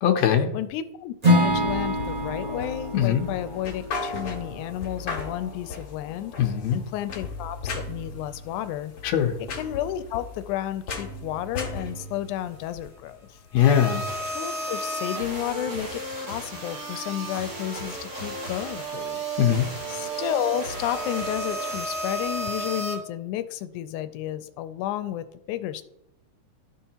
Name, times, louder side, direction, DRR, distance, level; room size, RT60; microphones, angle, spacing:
voice 1, 0.0-0.5 2.9-3.3 6.4-6.8 9.0-9.3 13.5-14.0 19.4-19.7, left 9 dB, 70° left, 4 dB, 2.0 m, -21 dB
voice 2, 0.5-6.3 6.7-8.9 9.5-13.4 14.3-19.2 19.9-25.8, left 12 dB, 90° left, 12 dB, 2.0 m, -32 dB
Acoustic guitar / Strum, 1.2-5.3, equal, 60° right, 0.4 m, -26 dB
sound 1, 1.5-13.7, left 3 dB, 55° left, 2.1 m, -37 dB
sound 2, 13.6-22.9, right 2 dB, 35° right, 2.1 m, -32 dB
13.0 x 5.6 x 2.9 m, 0.81 s
omnidirectional pair, 3.5 m